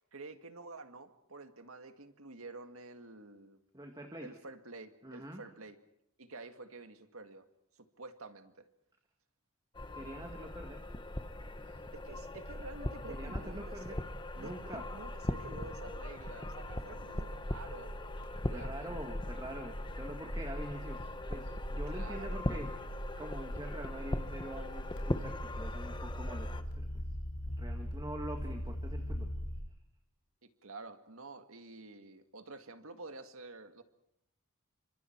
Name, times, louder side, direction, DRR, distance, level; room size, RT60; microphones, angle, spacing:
voice 1, 0.1-3.6 4.2-5.8 6.2-7.4 7.8-8.7 11.9-14.0 14.3-17.9 18.4-19.1 21.9-22.6 30.4-33.8, right 3 dB, 70° right, 8 dB, 1.9 m, -49 dB
voice 2, 3.7-4.3 5.0-5.4 9.9-10.8 11.6-11.8 13.1-14.0 14.4-14.8 18.5-22.7 23.2-27.0 27.6-29.3, right 1 dB, 20° right, 4 dB, 2.0 m, -45 dB
sound 1, 9.7-26.6, left 1 dB, 20° left, 1.2 m, -41 dB
sound 2, 12.4-29.6, equal, 90° left, 5.0 m, -42 dB
29.5 x 25.5 x 4.6 m, 0.77 s
head